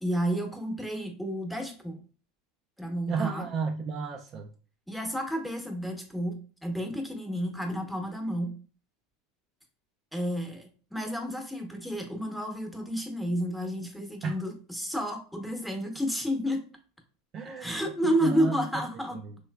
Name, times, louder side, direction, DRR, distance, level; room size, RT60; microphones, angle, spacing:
voice 1, 0.0-2.0 2.8-3.4 4.9-6.4 6.6-8.5 10.1-16.6 17.6-19.2, equal, ahead, 2 dB, 0.9 m, -31 dB
voice 2, 3.1-4.5 14.2-14.3 17.3-18.8 19.1-19.4, right 5 dB, 40° right, 3 dB, 0.4 m, -33 dB
3.2 x 3.1 x 2.3 m, 0.39 s
supercardioid pair, 110°, 0 cm